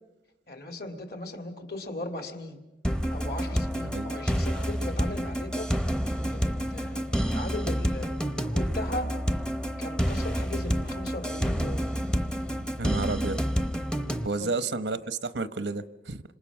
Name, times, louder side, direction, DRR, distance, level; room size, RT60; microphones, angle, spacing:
voice 1, 0.5-2.6 3.1-5.7 6.3-8.2 8.4-9.1 9.8-11.9 14.2-14.5, left 1 dB, 55° left, 6 dB, 2.6 m, -38 dB
sound 1, 2.8-14.3, equal, 5° left, 0.7 m, -29 dB
voice 2, 12.8-13.4 14.2-16.2, right 3 dB, 90° right, 13 dB, 1.0 m, -31 dB
27.0 x 26.5 x 6.2 m, 1.0 s
head